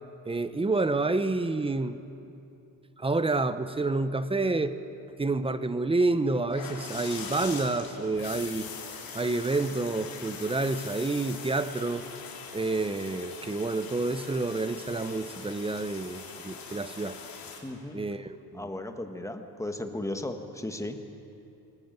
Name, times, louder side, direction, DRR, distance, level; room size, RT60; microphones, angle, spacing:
voice 1, 0.2-2.0 3.0-4.8 5.2-8.7 9.1-12.1 12.5-17.2 17.9-18.7, right 3 dB, 15° right, 12 dB, 0.8 m, -28 dB
sound 1, 6.5-17.6, left 5 dB, 55° left, 4.1 m, -42 dB
voice 2, 17.6-18.0 18.5-21.0, left 1 dB, 5° left, 6 dB, 1.5 m, -35 dB
21.5 x 19.0 x 9.0 m, 2.7 s
cardioid pair, 135°, 41 cm